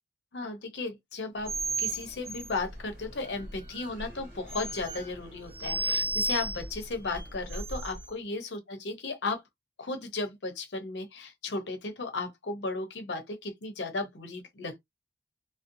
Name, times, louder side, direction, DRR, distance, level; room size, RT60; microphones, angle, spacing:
voice 1, 0.3-9.4 9.8-14.8, left 3 dB, 80° left, 0.8 m, -35 dB
sound 1, 1.4-8.1, right 2 dB, 50° right, 0.9 m, -35 dB
2.6 x 2.1 x 2.6 m
head